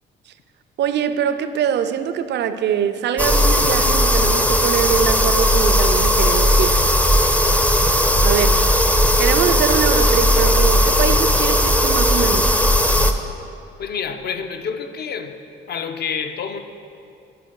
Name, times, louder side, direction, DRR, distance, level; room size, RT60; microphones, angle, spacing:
voice 1, 0.8-6.9 8.2-8.6 9.2-12.6, right 8 dB, 60° right, 11 dB, 0.4 m, -23 dB
sound 1, 3.2-13.1, equal, 5° left, 0.5 m, -16 dB
voice 2, 13.8-15.4 15.7-16.6, left 6 dB, 55° left, 8 dB, 0.5 m, -28 dB
11.0 x 4.2 x 4.6 m, 2.5 s
cardioid pair, 90°, 20 cm